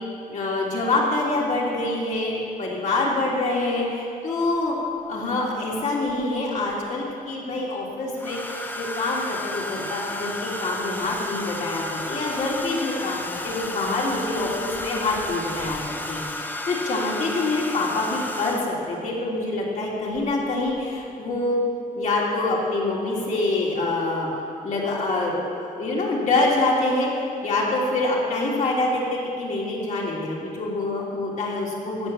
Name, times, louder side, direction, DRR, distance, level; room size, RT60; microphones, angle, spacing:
voice 1, 0.3-4.7 5.1-21.6 21.9-24.3 24.6-32.1, left 2 dB, 55° left, -4 dB, 3.2 m, -26 dB
Domestic sounds home sounds, 4.5-4.6 6.1-6.7 8.2-18.9 20.1-20.4 20.7-21.0, left 2 dB, 15° left, 0.9 m, -33 dB
16.0 x 7.3 x 7.4 m, 2.5 s
wide cardioid pair, 150°, 15 cm